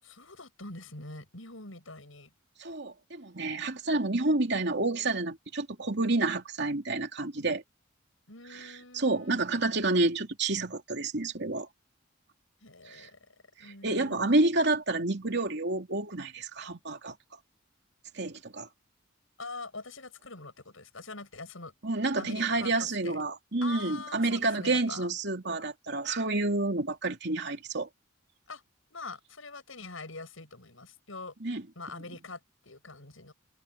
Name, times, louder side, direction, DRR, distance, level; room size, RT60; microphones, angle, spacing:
voice 1, 0.0-2.3 8.3-9.5 12.6-13.3 13.6-14.4 19.4-21.7 22.2-23.2 23.6-25.1 28.5-28.6 28.9-31.3 31.8-33.3, left 3 dB, 85° left, 7.7 m, -44 dB
voice 2, 2.6-7.6 8.5-11.7 12.9-13.1 13.6-17.1 18.1-18.7 21.8-27.9 31.4-31.6, right 2 dB, 60° right, 2.8 m, -29 dB
head